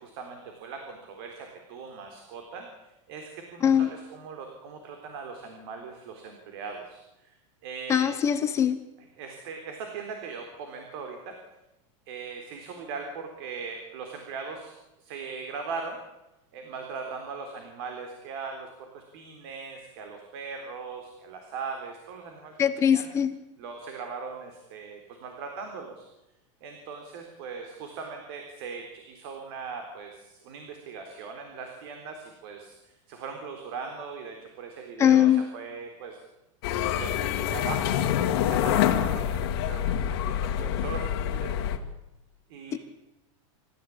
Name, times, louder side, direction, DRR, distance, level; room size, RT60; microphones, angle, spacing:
voice 1, 0.0-7.4 7.6-8.2 9.0-11.3 12.1-14.7 15.0-16.0 16.5-23.2 23.6-26.1 26.6-36.2 37.0-37.1 37.5-38.0 38.4-41.5 42.5-42.8, right 5 dB, 45° right, 4 dB, 3.8 m, -39 dB
voice 2, 7.9-8.8 22.6-23.3 35.0-35.4, left 9 dB, 15° left, 10 dB, 0.9 m, -21 dB
sound 1, 36.6-41.8, left 10 dB, 45° left, 2.2 m, -26 dB
28.0 x 14.5 x 8.6 m, 0.95 s
supercardioid pair, 180°, 17 cm